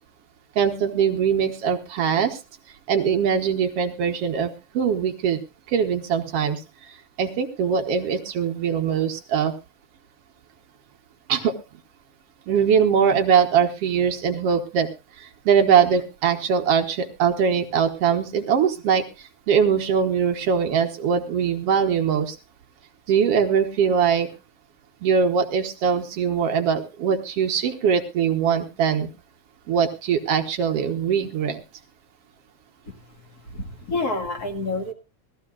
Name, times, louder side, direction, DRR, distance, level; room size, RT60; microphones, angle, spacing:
voice 1, 0.6-2.4 2.9-5.4 5.7-6.6 7.2-9.5 11.3-11.5 12.5-14.9 15.2-22.4 23.1-24.3 25.0-29.1 29.7-31.6, right 7 dB, 60° right, 4 dB, 1.8 m, -22 dB
voice 2, 33.5-34.9, left 2 dB, 35° left, 5 dB, 2.0 m, -28 dB
19.5 x 14.5 x 2.4 m, 0.28 s
omnidirectional pair, 3.6 m